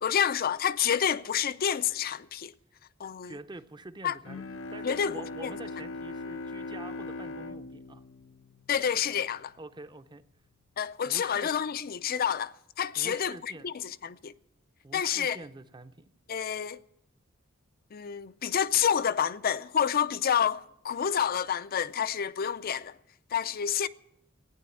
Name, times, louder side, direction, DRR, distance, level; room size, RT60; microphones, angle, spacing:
voice 1, 0.0-2.5 3.0-3.3 4.0-4.2 4.8-5.1 5.4-5.6 8.7-9.5 10.8-14.3 14.9-15.4 16.3-16.8 17.9-23.0 23.3-23.9, left 8 dB, 45° left, 0.5 m, -29 dB
voice 2, 3.2-4.4 4.7-8.0 9.6-10.2 11.0-11.5 12.9-13.7 14.8-16.1, right 2 dB, 20° right, 0.6 m, -46 dB
Bowed string instrument, 4.2-9.4, left 2 dB, 80° left, 0.8 m, -40 dB
15.0 x 9.6 x 8.3 m
head